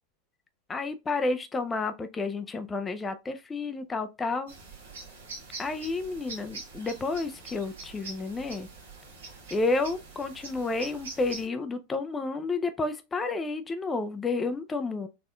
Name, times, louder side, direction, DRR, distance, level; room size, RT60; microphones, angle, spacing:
voice 1, 0.7-4.5 5.6-8.7 9.5-15.1, left 3 dB, 20° left, 0.5 m, -31 dB
sound 1, 4.5-11.5, right 3 dB, 70° right, 1.4 m, -44 dB
4.0 x 3.6 x 2.3 m
figure-of-eight pair, 85°, 0 cm